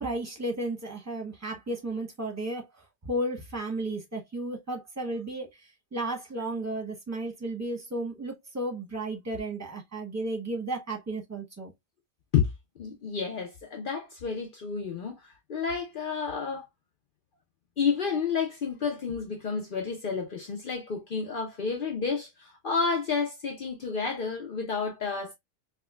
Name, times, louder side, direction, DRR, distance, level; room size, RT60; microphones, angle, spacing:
voice 1, 0.0-2.7 3.0-5.5 5.9-11.7, right 1 dB, 15° right, 0.9 m, -33 dB
voice 2, 12.8-16.7 17.8-25.3, left 6 dB, 55° left, 0.8 m, -30 dB
4.5 x 2.2 x 2.2 m
omnidirectional pair, 1.1 m